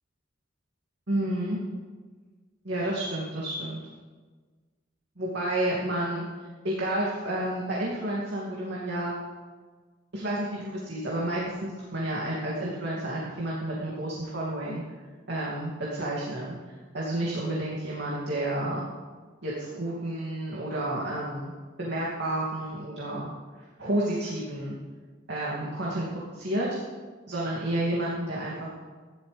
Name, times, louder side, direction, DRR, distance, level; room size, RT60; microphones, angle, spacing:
voice 1, 1.1-1.6 2.6-3.8 5.2-6.2 6.6-9.1 10.1-14.8 15.3-16.6 16.9-18.9 19.4-21.5 21.8-23.3 23.8-24.8 25.3-26.8 27.3-28.7, right 1 dB, 65° right, -6 dB, 2.7 m, -30 dB
16.5 x 12.0 x 3.5 m, 1.4 s
head